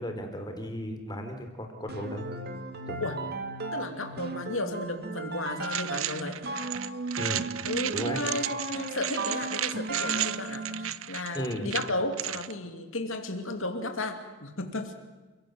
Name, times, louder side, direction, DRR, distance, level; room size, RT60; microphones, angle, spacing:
voice 1, 0.0-2.3 2.9-3.1 7.1-7.5 7.9-8.2 11.3-11.7, equal, 20° left, 5 dB, 3.6 m, -35 dB
sound 1, 1.9-11.1, right 2 dB, 45° right, 2.0 m, -36 dB
voice 2, 3.7-6.4 7.6-14.9, left 2 dB, 65° left, 5 dB, 2.7 m, -34 dB
sound 2, 5.6-12.5, right 12 dB, 70° right, 0.7 m, -34 dB
29.5 x 17.0 x 7.9 m, 1.3 s
head